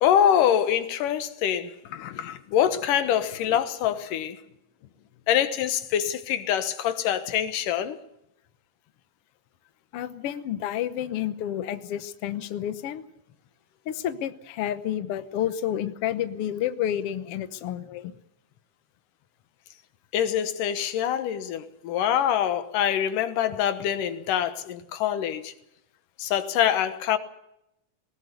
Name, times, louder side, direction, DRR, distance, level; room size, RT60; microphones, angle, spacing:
voice 1, 0.0-4.4 5.3-8.0 20.1-25.5 26.2-27.2, left 9 dB, 70° left, 2.6 m, -25 dB
voice 2, 9.9-13.0 13.8-18.1, left 11 dB, 90° left, 1.2 m, -30 dB
19.5 x 19.0 x 8.1 m
omnidirectional pair, 4.2 m